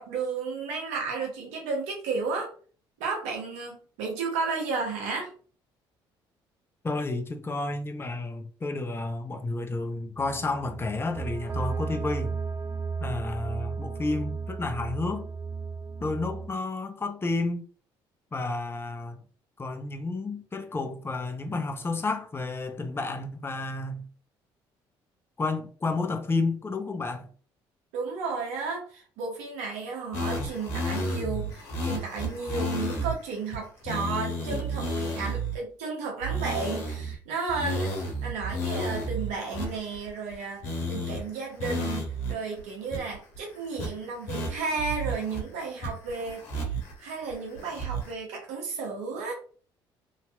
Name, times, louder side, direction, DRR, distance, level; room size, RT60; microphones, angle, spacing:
voice 1, 0.0-2.5 3.0-5.3 27.9-37.9 38.2-49.3, right 4 dB, 75° right, 1.1 m, -33 dB
voice 2, 6.8-12.4 13.0-15.3 16.0-17.6 18.3-19.2 19.6-24.1 25.4-27.3, left 3 dB, 20° left, 0.6 m, -31 dB
sound 1, 10.2-16.5, right 5 dB, 30° right, 0.5 m, -34 dB
sound 2, 30.1-33.1 33.5-33.6 33.9-35.6 36.2-37.1 37.5-40.3 40.6-41.2 41.6-42.3 42.6-42.7 42.9-43.4 43.8-43.9 44.3-45.4 45.8-46.9 47.3-48.1, right 1 dB, 80° left, 0.9 m, -32 dB
3.0 x 2.7 x 2.3 m
hypercardioid pair, 55°, 11 cm